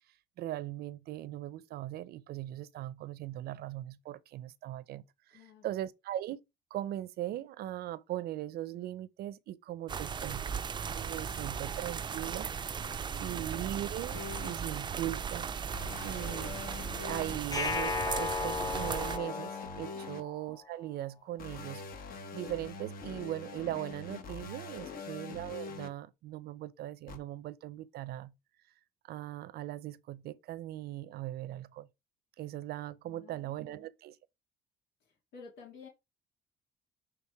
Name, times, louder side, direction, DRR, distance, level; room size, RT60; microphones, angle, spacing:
voice 1, 0.4-5.0 5.3-6.4 6.7-10.5 10.9-12.5 13.2-15.5 16.0-16.5 17.0-21.8 22.3-28.3 29.1-31.9 32.4-34.2, right 13 dB, 70° right, 0.6 m, -39 dB
voice 2, 5.3-5.7 12.8-13.4 19.9-20.1 24.8-25.0 33.0-33.9 35.0-35.9, left 6 dB, 85° left, 2.1 m, -53 dB
sound 1, 9.9-19.2, right 7 dB, 25° right, 0.4 m, -37 dB
sound 2, 14.1-14.5 15.7-17.4 18.6-20.2 21.4-25.9 27.1-27.2, left 4 dB, 60° left, 1.4 m, -43 dB
sound 3, 17.5-20.6, left 4 dB, 20° left, 1.0 m, -35 dB
7.3 x 3.4 x 4.6 m
cardioid pair, 110°, 17 cm